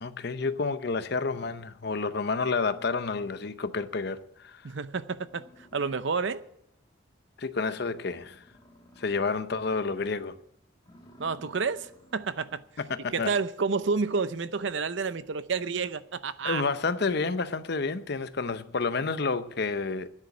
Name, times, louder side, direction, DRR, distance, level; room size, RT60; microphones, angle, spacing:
voice 1, 0.0-4.6 7.4-8.4 9.0-10.4 12.8-13.3 16.4-20.1, left 4 dB, 50° left, 0.7 m, -30 dB
sound 1, 4.6-4.7 5.1-6.5 6.9-7.0 7.4-7.5 7.7-9.6 9.9-10.2 10.7-12.8, left 1 dB, 20° left, 1.6 m, -56 dB
voice 2, 4.6-5.4 5.7-6.4 11.2-12.6 13.1-16.6, right 4 dB, 60° right, 0.6 m, -30 dB
10.0 x 8.0 x 9.6 m
head